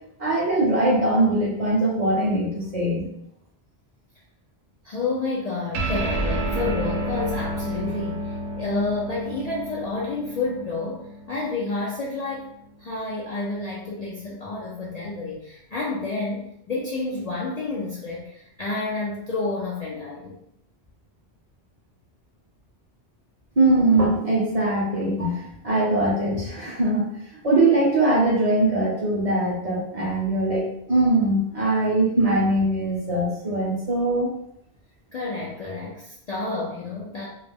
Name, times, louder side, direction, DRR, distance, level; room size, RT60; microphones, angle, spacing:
voice 1, 0.2-3.0 23.6-27.1 27.4-34.3, right 2 dB, 40° right, -4 dB, 0.6 m, -21 dB
voice 2, 4.8-12.5 12.8-20.4 35.1-37.3, left 3 dB, 55° left, -5 dB, 0.4 m, -30 dB
sound 1, 5.7-12.5, right 1 dB, 85° right, 0.8 m, -30 dB
2.3 x 2.0 x 3.4 m, 0.75 s
omnidirectional pair, 1.1 m